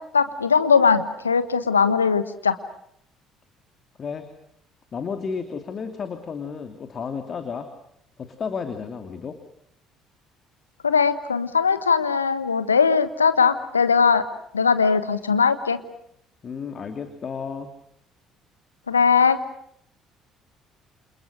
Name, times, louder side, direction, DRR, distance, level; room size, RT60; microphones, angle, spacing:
voice 1, 0.0-2.6 10.8-14.2 14.5-15.8 18.9-19.4, left 5 dB, 85° left, 12 dB, 1.2 m, -20 dB
voice 2, 4.9-7.7 8.2-9.4 16.4-17.7, left 5 dB, 40° left, 7 dB, 2.7 m, -32 dB
29.0 x 28.5 x 6.4 m, 0.73 s
figure-of-eight pair, 50°, 0 cm